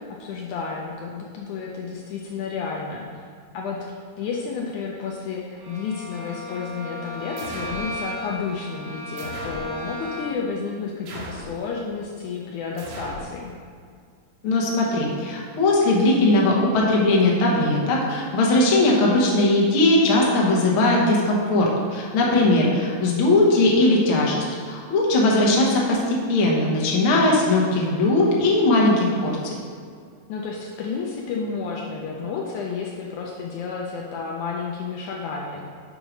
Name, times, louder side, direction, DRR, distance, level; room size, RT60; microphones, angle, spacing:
voice 1, 0.0-3.1 3.5-3.9 4.2-13.5 22.3-22.5 30.3-35.7, left 5 dB, 80° left, -2 dB, 2.0 m, -31 dB
Bowed string instrument, 5.6-10.6, equal, 50° right, 2.0 m, -35 dB
sound 1, 7.4-7.9 9.2-9.7 11.1-11.6 12.8-13.3, right 1 dB, 90° right, 2.8 m, -37 dB
voice 2, 14.4-29.5, left 2 dB, 55° left, -3 dB, 1.6 m, -19 dB
6.3 x 4.8 x 5.0 m, 2.2 s
omnidirectional pair, 3.8 m